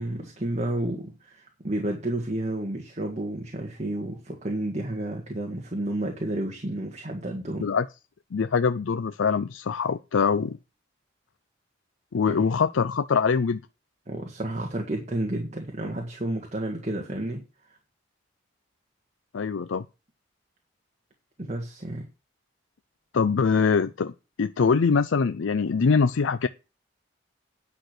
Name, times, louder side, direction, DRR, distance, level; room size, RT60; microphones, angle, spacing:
voice 1, 0.0-7.7 12.3-12.4 14.1-17.4 21.4-22.1, right 1 dB, 35° right, 1.8 m, -31 dB
voice 2, 8.3-10.6 12.1-13.6 19.3-19.9 23.1-24.1 24.4-26.5, left 5 dB, 85° left, 0.5 m, -23 dB
10.0 x 6.2 x 6.6 m
head